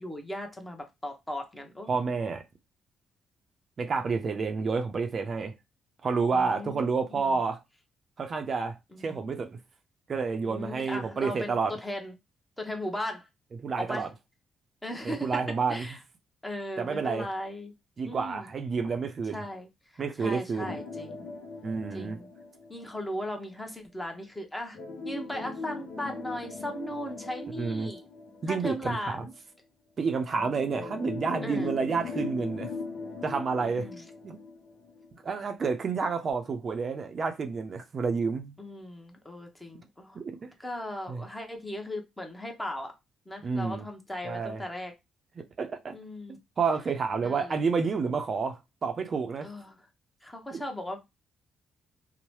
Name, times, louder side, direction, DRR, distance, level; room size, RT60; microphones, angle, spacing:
voice 1, 0.0-1.9 6.3-7.3 8.9-9.2 10.5-12.1 12.6-13.3 13.8-14.1 14.8-15.3 15.7-16.0 16.4-17.7 18.1-18.5 19.3-19.7 20.2-21.3 21.9-22.3 22.7-28.0 28.5-29.3 31.4-31.7 33.6-34.0 38.6-42.9 43.3-44.9 45.9-46.4 47.2-47.6 49.4-49.8 50.2-51.0, left 1 dB, 10° left, 0.8 m, -37 dB
voice 2, 1.9-2.4 3.8-5.5 6.0-7.6 8.2-9.6 10.1-11.7 13.6-14.1 15.0-15.8 16.8-17.3 18.0-19.4 20.0-20.8 21.6-22.2 27.6-27.9 28.4-29.2 30.0-32.7 33.2-33.9 34.2-34.4 35.2-38.6 40.2-40.5 41.1-41.2 43.4-43.9 44.2-44.6 45.4-46.0 46.6-49.5 50.5-50.6, right 5 dB, 45° right, 0.4 m, -29 dB
sound 1, 20.6-23.3 24.7-29.1 30.3-35.3 35.6-35.7 36.3-36.4, left 4 dB, 80° left, 0.6 m, -40 dB
2.8 x 2.0 x 3.0 m
cardioid pair, 90°, 0 cm